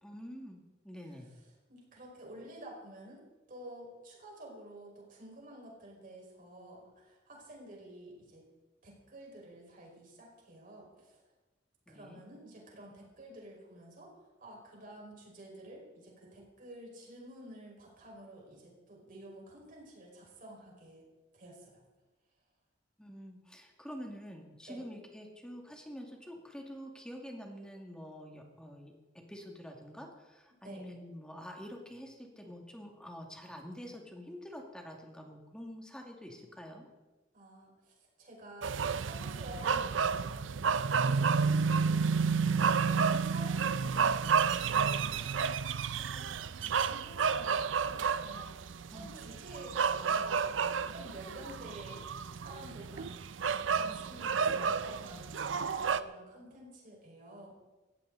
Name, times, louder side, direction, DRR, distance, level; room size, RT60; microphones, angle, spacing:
voice 1, 0.0-1.3 11.9-12.2 23.0-36.9 48.9-49.2, equal, 5° left, 1 dB, 2.3 m, -47 dB
voice 2, 1.7-8.4 8.8-11.2 11.9-21.1 21.3-21.8 24.7-24.8 30.6-30.9 37.3-42.1 42.5-45.4 45.9-46.3 46.6-52.1 52.4-57.5, right 1 dB, 45° right, -1 dB, 5.3 m, -50 dB
sound 1, 38.6-56.0, right 6 dB, 90° right, 0.6 m, -31 dB
17.5 x 15.0 x 4.0 m, 1.2 s
head